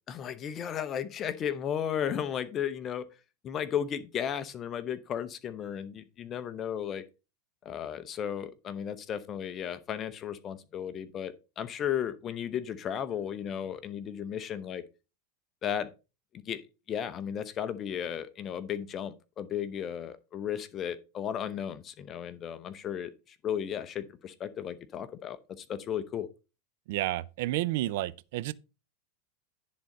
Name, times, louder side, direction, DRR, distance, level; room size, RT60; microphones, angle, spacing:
voice 1, 0.1-3.0 3.4-7.0 7.6-14.8 15.6-15.9 16.3-16.6 16.9-26.3, left 9 dB, 30° left, 0.7 m, -34 dB
voice 2, 26.9-28.5, right 16 dB, 65° right, 0.5 m, -30 dB
10.5 x 3.8 x 5.4 m
supercardioid pair, 125°, 0 cm